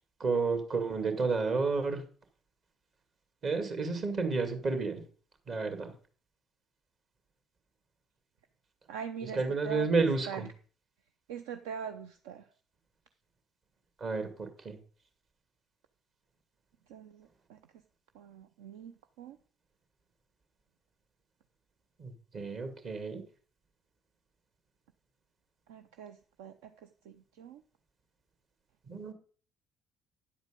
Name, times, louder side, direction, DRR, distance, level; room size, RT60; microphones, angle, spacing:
voice 1, 0.2-2.0 3.4-5.0 5.5-5.9 9.3-10.5 14.0-14.8 22.0-23.2 28.9-29.1, right 4 dB, 45° right, 6 dB, 2.4 m, -31 dB
voice 2, 8.9-10.5 11.3-12.5 16.9-17.6 18.1-19.4 25.7-27.6, right 7 dB, 65° right, 9 dB, 0.6 m, -43 dB
10.5 x 8.0 x 5.2 m, 0.41 s
figure-of-eight pair, 50°, 0 cm